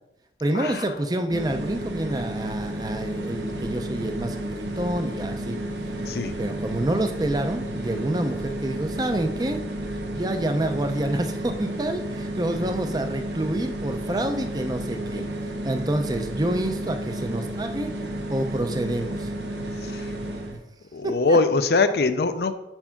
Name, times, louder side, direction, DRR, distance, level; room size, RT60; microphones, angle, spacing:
voice 1, 0.4-5.6 6.4-9.6 10.1-15.2 15.6-17.9 18.3-19.3 21.0-21.4, right 1 dB, 20° right, 7 dB, 0.5 m, -27 dB
sound 1, 1.3-20.6, right 1 dB, 80° right, 1.0 m, -32 dB
voice 2, 20.9-22.5, left 3 dB, 60° left, 10 dB, 0.4 m, -21 dB
5.4 x 4.4 x 5.8 m, 0.94 s
head